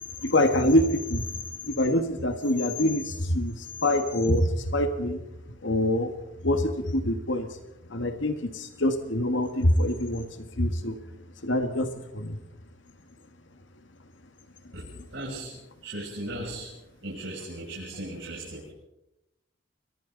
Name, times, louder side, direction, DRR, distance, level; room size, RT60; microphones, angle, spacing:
voice 1, 0.2-1.3 1.7-5.2 5.6-6.1 6.4-7.5 7.9-10.3 10.6-11.0 11.4-12.4, left 1 dB, 75° left, 7 dB, 1.9 m, -25 dB
voice 2, 14.7-15.5 15.8-16.7 17.0-18.7, right 1 dB, 70° right, -5 dB, 7.5 m, -37 dB
30.0 x 23.5 x 4.1 m, 0.88 s
head